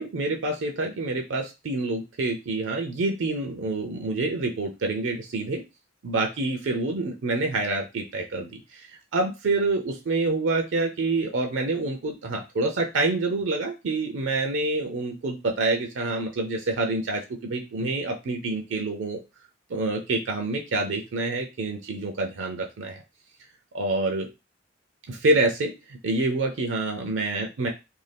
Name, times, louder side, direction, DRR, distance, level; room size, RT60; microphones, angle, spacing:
voice 1, 0.0-5.6 6.0-8.9 9.1-19.2 19.7-23.0 23.7-24.3 25.1-27.7, right 2 dB, 70° right, 3 dB, 0.5 m, -27 dB
2.6 x 2.2 x 3.3 m, 0.26 s
head